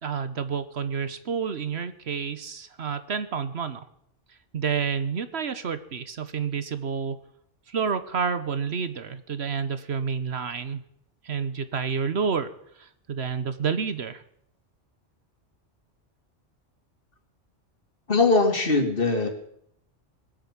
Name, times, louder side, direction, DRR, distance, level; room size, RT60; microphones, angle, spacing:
voice 1, 0.0-3.8 4.5-7.2 7.7-10.8 11.2-12.5 12.8-14.2, right 6 dB, 65° right, 12 dB, 1.2 m, -29 dB
voice 2, 18.1-19.3, left 3 dB, 50° left, 5 dB, 2.6 m, -21 dB
21.0 x 8.9 x 7.4 m, 0.71 s
omnidirectional pair, 1.2 m